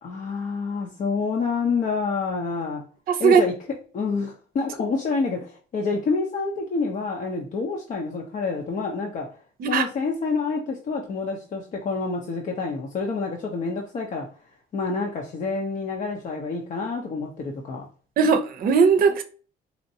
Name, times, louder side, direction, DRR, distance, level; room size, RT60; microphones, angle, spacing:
voice 1, 0.0-2.8 3.2-9.3 9.7-14.3 14.7-17.9, left 4 dB, 50° left, 0.7 m, -28 dB
voice 2, 3.1-3.4 9.6-9.9 18.2-19.2, right 5 dB, 60° right, 0.6 m, -18 dB
4.2 x 2.5 x 2.7 m
cardioid pair, 100°, 17 cm